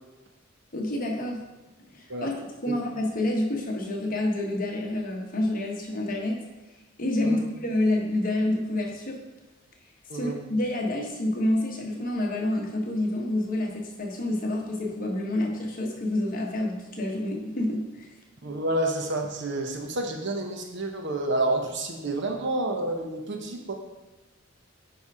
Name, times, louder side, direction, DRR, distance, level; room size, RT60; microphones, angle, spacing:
voice 1, 0.7-1.4 1.9-2.3 2.6-6.4 7.0-9.2 10.1-18.1, left 1 dB, 45° left, 0 dB, 1.2 m, -28 dB
voice 2, 18.4-23.7, right 2 dB, 60° right, 3 dB, 1.0 m, -29 dB
9.9 x 3.5 x 4.8 m, 1.1 s
head